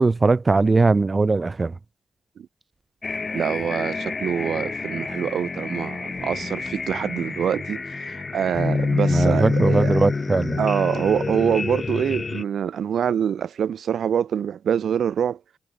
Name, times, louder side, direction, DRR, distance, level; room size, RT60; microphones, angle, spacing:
voice 1, 0.0-1.7 9.1-10.6, right 3 dB, 35° right, 4.9 m, -20 dB
sound 1, 3.0-12.4, left 4 dB, 40° left, 4.8 m, -27 dB
voice 2, 3.3-10.0 10.6-15.4, right 8 dB, 70° right, 2.0 m, -25 dB
supercardioid pair, 45°, 0 cm